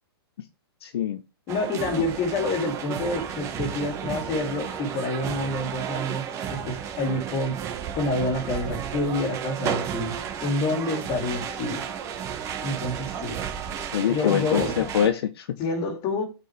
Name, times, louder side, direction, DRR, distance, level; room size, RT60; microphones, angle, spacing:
voice 1, 0.8-1.2 13.9-15.6, left 9 dB, 70° left, 0.9 m, -24 dB
voice 2, 1.5-7.6 8.0-11.8 12.6-13.4 14.1-14.9 15.6-16.2, left 2 dB, 30° left, 2.5 m, -28 dB
sound 1, 1.5-15.1, right 8 dB, 20° right, 1.4 m, -33 dB
8.6 x 4.9 x 3.4 m
hypercardioid pair, 155°, 14 cm